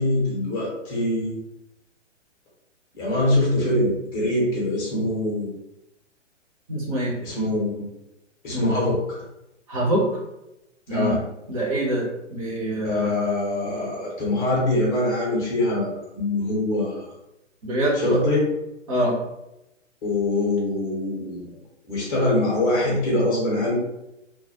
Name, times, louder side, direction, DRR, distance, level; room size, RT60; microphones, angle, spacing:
voice 1, 0.0-1.4 2.9-5.5 7.2-7.9 8.4-9.2 10.9-11.2 12.8-17.1 18.0-18.5 20.0-21.5 21.9-23.8, left 1 dB, 20° left, -5 dB, 0.7 m, -23 dB
voice 2, 6.7-7.2 8.5-8.7 9.7-10.2 10.9-11.1 11.5-13.1 17.6-18.2 18.9-19.2, right 1 dB, 30° right, -4 dB, 0.7 m, -25 dB
2.2 x 2.1 x 2.8 m, 0.89 s
figure-of-eight pair, 125°, 37 cm